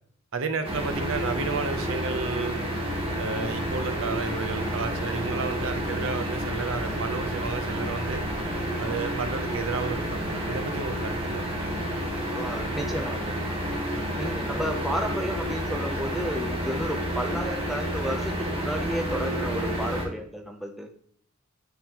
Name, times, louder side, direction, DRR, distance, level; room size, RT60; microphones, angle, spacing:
voice 1, 0.3-2.6 3.2-8.2 8.8-11.5, right 4 dB, 60° right, 8 dB, 0.6 m, -32 dB
sound 1, 0.6-20.1, equal, 25° right, 1.2 m, -30 dB
voice 2, 12.3-13.4 14.1-20.9, equal, ahead, 2 dB, 0.4 m, -32 dB
9.3 x 3.6 x 2.8 m, 0.62 s
head